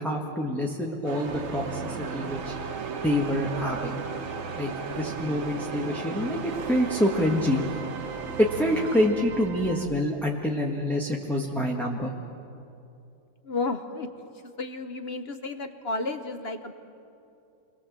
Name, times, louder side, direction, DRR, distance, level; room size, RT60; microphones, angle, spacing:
voice 1, 0.0-2.5 3.0-4.0 4.6-7.8 8.4-12.1, left 1 dB, ahead, -2 dB, 1.3 m, -26 dB
sound 1, 1.0-9.1, right 4 dB, 70° right, 2.3 m, -37 dB
sound 2, 1.3-9.9, right 6 dB, 50° right, 1.1 m, -38 dB
voice 2, 13.4-14.1 14.6-16.7, left 3 dB, 45° left, 8 dB, 0.9 m, -32 dB
28.5 x 21.5 x 7.5 m, 2.6 s
omnidirectional pair, 2.3 m